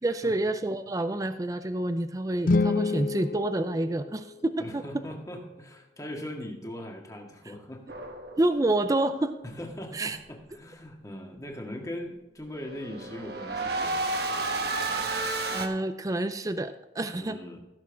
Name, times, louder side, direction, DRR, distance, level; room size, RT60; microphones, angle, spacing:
voice 1, 0.0-4.9 8.4-9.4 9.9-10.2 15.5-17.4, right 2 dB, 20° right, 10 dB, 0.4 m, -28 dB
sound 1, 2.4-4.6, left 3 dB, 50° left, 0.4 m, -28 dB
voice 2, 4.6-7.8 9.4-14.0 17.1-17.6, left 1 dB, 20° left, 1 dB, 1.8 m, -40 dB
sound 2, 7.9-8.8 12.5-15.7, right 2 dB, 60° right, 1.2 m, -31 dB
16.0 x 7.2 x 3.5 m, 1.1 s
head